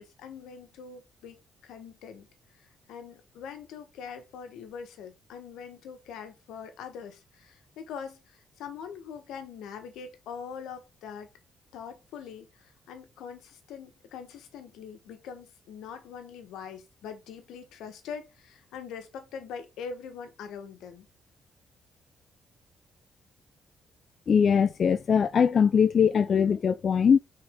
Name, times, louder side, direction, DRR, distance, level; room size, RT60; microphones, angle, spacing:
voice 1, 0.0-2.3 2.6-11.3 11.7-21.1, left 7 dB, 85° left, 1.5 m, -43 dB
voice 2, 24.3-27.2, left 7 dB, 50° left, 0.4 m, -21 dB
6.0 x 4.4 x 3.8 m
cardioid pair, 90°, 0 cm